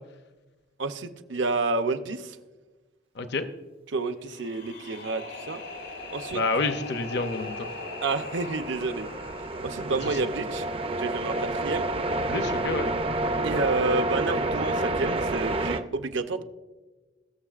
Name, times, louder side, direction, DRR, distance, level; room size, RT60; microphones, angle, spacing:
voice 1, 0.8-2.4 3.9-5.6 6.1-6.4 8.0-9.1 9.6-10.6 11.0-11.9 13.4-16.4, right 3 dB, 70° right, 8 dB, 0.7 m, -29 dB
voice 2, 3.2-3.5 6.3-7.5 12.3-12.9, left 3 dB, 60° left, 9 dB, 0.6 m, -28 dB
sound 1, 4.2-11.3, left 3 dB, 90° left, 3.0 m, -41 dB
sound 2, 5.6-15.8, right 2 dB, 30° right, 0.5 m, -30 dB
21.0 x 7.0 x 2.4 m, 1.2 s
head